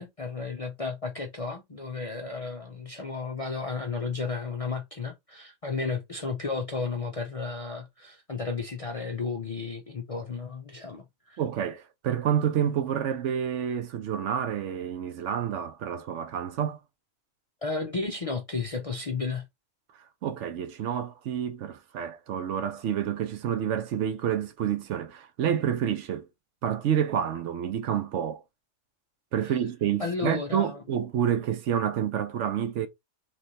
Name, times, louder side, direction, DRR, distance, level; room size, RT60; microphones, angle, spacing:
voice 1, 0.0-11.4 17.6-19.5 30.0-30.8, left 4 dB, 45° left, 0.5 m, -33 dB
voice 2, 11.4-16.8 20.2-26.3 26.6-28.4 29.3-32.9, right 9 dB, 70° right, 0.9 m, -28 dB
3.2 x 3.1 x 4.0 m
omnidirectional pair, 1.3 m